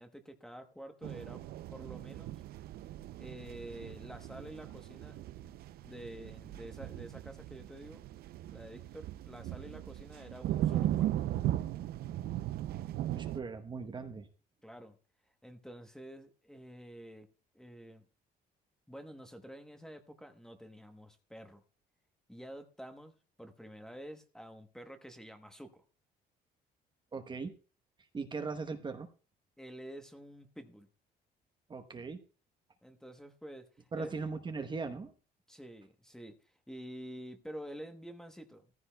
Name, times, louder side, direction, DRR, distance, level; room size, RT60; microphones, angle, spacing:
voice 1, 0.0-1.4 1.7-2.4 3.2-5.5 5.8-8.0 8.5-11.1 14.6-15.0 15.4-17.3 17.5-18.0 18.9-21.6 22.3-25.8 29.6-30.9 32.8-34.1 35.5-38.7, equal, 5° left, 7 dB, 1.0 m, -49 dB
sound 1, 1.0-13.4, right 13 dB, 65° right, 0.5 m, -38 dB
voice 2, 13.1-14.3 27.1-27.5 28.1-29.1 31.7-32.2 33.9-35.1, right 4 dB, 25° right, 7 dB, 1.0 m, -39 dB
14.5 x 14.5 x 2.2 m, 0.36 s
cardioid pair, 110°, 17 cm